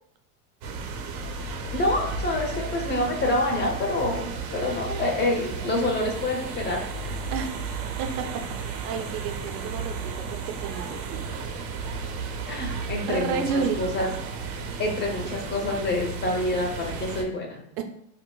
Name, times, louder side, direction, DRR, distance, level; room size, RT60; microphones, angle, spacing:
sound 1, 0.6-17.2, right 4 dB, 45° right, 0.7 m, -34 dB
voice 1, 1.7-6.8 12.5-14.1 14.8-17.6, left 2 dB, 20° left, 1 dB, 0.8 m, -27 dB
voice 2, 7.3-7.7 8.0-11.3 13.0-14.2 15.2-15.5 17.8-17.9, right 6 dB, 80° right, 6 dB, 0.7 m, -31 dB
4.6 x 2.2 x 2.3 m, 0.76 s
supercardioid pair, 130°, 47 cm